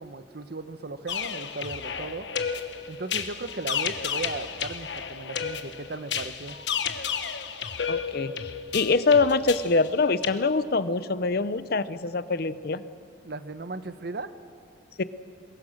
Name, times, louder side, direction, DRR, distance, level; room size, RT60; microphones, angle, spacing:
voice 1, 0.0-2.3 2.9-6.6 13.2-14.3, right 3 dB, 60° right, 11 dB, 0.9 m, -36 dB
sound 1, 1.1-10.3, left 7 dB, 80° left, 1.2 m, -32 dB
voice 2, 7.9-12.8 15.0-15.1, left 3 dB, 60° left, 14 dB, 0.7 m, -24 dB
23.0 x 22.5 x 6.5 m, 2.4 s
head